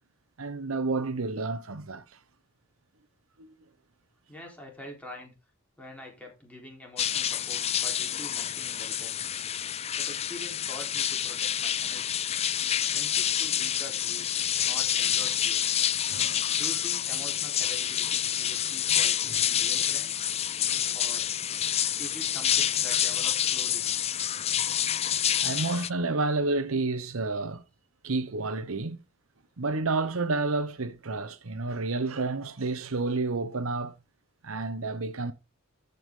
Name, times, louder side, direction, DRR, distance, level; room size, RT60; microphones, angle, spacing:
voice 1, 0.4-2.0 3.4-3.5 16.1-16.5 25.4-27.6 28.0-29.0 29.6-33.9 34.4-35.3, right 3 dB, 80° right, 0.9 m, -30 dB
voice 2, 4.3-5.3 5.8-9.2 10.0-12.2 12.9-14.3 14.6-15.6 16.6-20.2 20.9-21.3 22.0-23.9, left 1 dB, 5° left, 3.9 m, -45 dB
sound 1, 7.0-25.9, left 10 dB, 30° left, 0.4 m, -28 dB
14.0 x 5.8 x 3.7 m
head